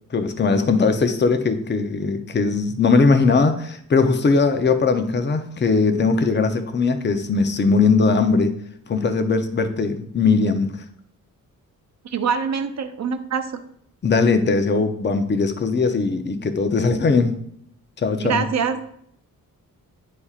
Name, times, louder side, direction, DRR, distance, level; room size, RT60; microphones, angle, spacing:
voice 1, 0.1-8.6 8.9-10.7 14.0-17.4 18.0-18.5, left 4 dB, 30° left, 0.6 m, -19 dB
voice 2, 12.0-13.6 18.2-18.8, right 6 dB, 50° right, 0.7 m, -24 dB
9.7 x 4.2 x 2.4 m
cardioid pair, 90°, 34 cm